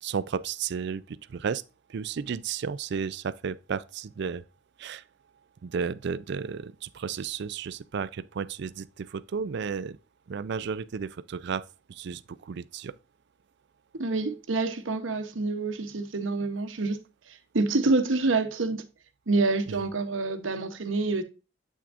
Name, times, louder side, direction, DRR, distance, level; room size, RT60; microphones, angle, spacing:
voice 1, 0.0-1.6 1.9-4.4 4.8-5.0 5.6-10.0 10.3-11.6 11.9-12.9 19.7-19.8, right 6 dB, 60° right, 0.4 m, -33 dB
voice 2, 13.9-17.0 17.5-18.8 19.3-21.2, right 3 dB, 90° right, 0.9 m, -27 dB
8.2 x 6.0 x 2.5 m
head